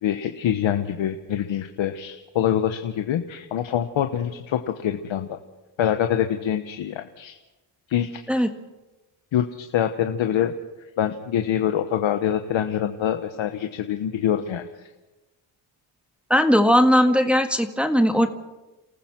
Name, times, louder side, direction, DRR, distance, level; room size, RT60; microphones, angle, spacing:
voice 1, 0.0-5.4 5.8-7.3 7.9-8.4 9.3-10.5 11.0-14.7, left 10 dB, 75° left, 7 dB, 1.3 m, -25 dB
voice 2, 16.3-18.3, equal, ahead, 6 dB, 1.6 m, -18 dB
29.0 x 15.0 x 6.2 m, 1.1 s
cardioid pair, 95°, 46 cm